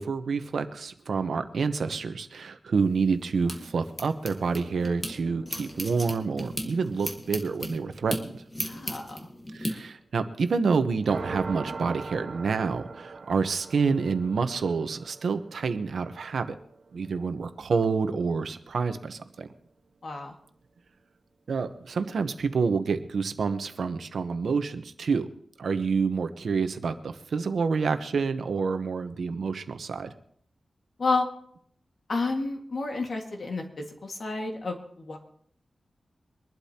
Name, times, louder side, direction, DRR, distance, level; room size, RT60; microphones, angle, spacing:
voice 1, 0.0-8.4 9.5-16.5 16.9-19.5 21.5-25.3 25.6-30.1, right 5 dB, 85° right, 9 dB, 0.9 m, -28 dB
sound 1, 2.8-5.1 5.5-9.7, left 1 dB, 20° left, 1.6 m, -36 dB
sound 2, 4.3-10.6 11.0-18.8, right 4 dB, 65° right, 1.3 m, -44 dB
voice 2, 8.6-9.2 20.0-20.3 31.0-31.3 32.1-35.2, left 3 dB, 55° left, 2 dB, 1.8 m, -30 dB
24.0 x 12.0 x 2.9 m, 0.63 s
wide cardioid pair, 145°, 0 cm